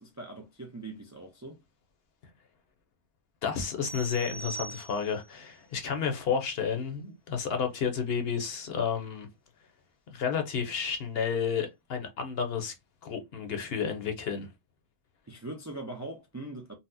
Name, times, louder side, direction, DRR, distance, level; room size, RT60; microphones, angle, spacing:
voice 1, 0.0-1.6 15.3-16.7, right 2 dB, 25° right, 0.3 m, -41 dB
voice 2, 3.4-9.3 10.1-12.7 13.0-14.5, left 6 dB, 65° left, 0.9 m, -31 dB
sound 1, 3.8-5.4, right 4 dB, 85° right, 1.5 m, -42 dB
4.1 x 2.0 x 2.5 m
omnidirectional pair, 1.2 m